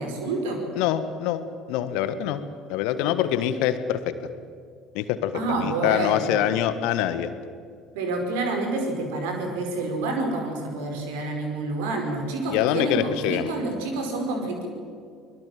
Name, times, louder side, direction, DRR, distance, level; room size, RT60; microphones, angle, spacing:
voice 1, 0.0-0.6 5.3-6.5 7.9-14.7, right 2 dB, 65° right, 3 dB, 5.0 m, -28 dB
voice 2, 0.8-1.4 1.7-2.4 2.7-4.1 4.9-7.3 12.5-13.5, left 11 dB, 60° left, 12 dB, 1.5 m, -25 dB
24.5 x 21.5 x 7.6 m, 2.2 s
figure-of-eight pair, 60°, 0 cm